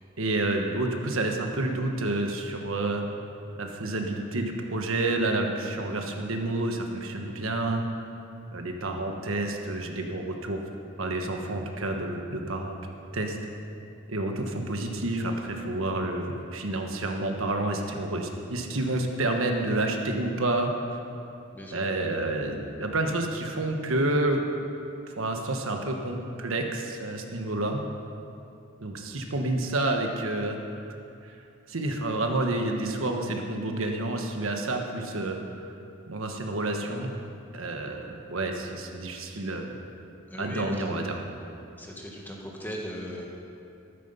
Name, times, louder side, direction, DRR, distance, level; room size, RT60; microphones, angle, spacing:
voice 1, 0.2-3.0 3.6-7.8 8.5-10.6 11.0-12.8 13.1-13.4 14.1-20.7 21.7-24.4 25.1-27.8 28.8-30.6 31.2-31.3 31.7-35.7 36.1-37.1 37.5-39.7 40.3-41.2, right 2 dB, 75° right, 3 dB, 1.3 m, -29 dB
voice 2, 21.5-21.9 40.3-41.0 41.8-43.3, equal, 10° left, -2 dB, 1.6 m, -38 dB
13.5 x 11.5 x 5.7 m, 2.6 s
head